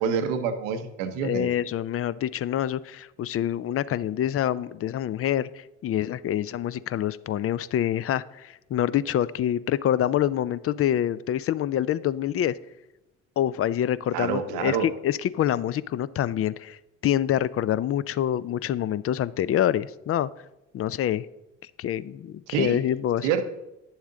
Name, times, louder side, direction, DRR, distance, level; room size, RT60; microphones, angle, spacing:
voice 1, 0.0-1.5 14.1-14.9 22.5-22.8 23.2-23.4, right 7 dB, 90° right, 9 dB, 0.8 m, -27 dB
voice 2, 1.2-12.6 13.4-16.8 17.0-20.3 20.7-21.3 21.8-23.3, left 11 dB, 45° left, 18 dB, 0.4 m, -26 dB
9.6 x 7.2 x 3.7 m, 0.94 s
hypercardioid pair, 55°, 34 cm